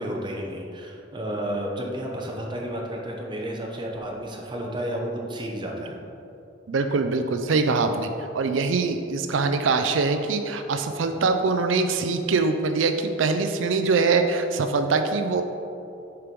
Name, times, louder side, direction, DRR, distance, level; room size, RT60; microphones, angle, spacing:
voice 1, 0.0-6.0, equal, 25° right, 0 dB, 0.9 m, -31 dB
voice 2, 6.7-15.4, right 4 dB, 90° right, 7 dB, 0.4 m, -23 dB
6.7 x 4.6 x 5.2 m, 2.7 s
head